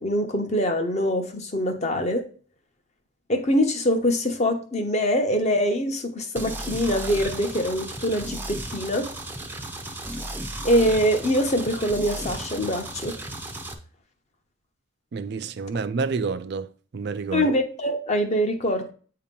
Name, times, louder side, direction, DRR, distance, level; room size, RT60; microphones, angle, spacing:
voice 1, 0.0-2.3 3.3-9.1 10.6-13.2 17.3-18.9, equal, 35° left, 0.9 m, -24 dB
sound 1, 6.4-13.7, right 1 dB, 10° right, 0.6 m, -34 dB
voice 2, 15.1-16.7 16.9-17.5, right 4 dB, 55° right, 0.4 m, -28 dB
8.3 x 2.9 x 5.2 m
head